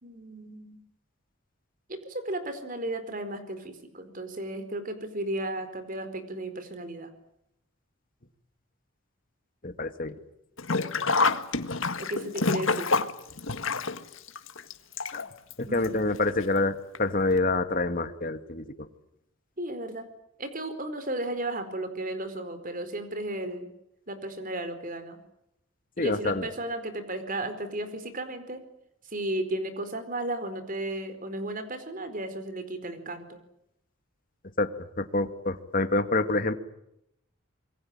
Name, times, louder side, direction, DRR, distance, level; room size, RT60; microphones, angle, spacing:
voice 1, 0.0-0.8 1.9-7.1 12.0-12.9 15.7-16.2 19.6-20.1 20.4-23.7 24.1-25.2 26.0-28.6 29.1-33.4, right 1 dB, 40° right, 10 dB, 4.6 m, -34 dB
voice 2, 9.6-10.1 15.1-15.2 15.6-18.9 26.0-26.5 34.6-34.7 35.0-36.5, left 2 dB, 40° left, 9 dB, 2.1 m, -27 dB
Sink (filling or washing), 10.6-15.5 15.8-15.9 16.9-17.0 17.4-17.5, left 3 dB, 70° left, 1.8 m, -27 dB
27.0 x 23.0 x 9.0 m, 0.79 s
head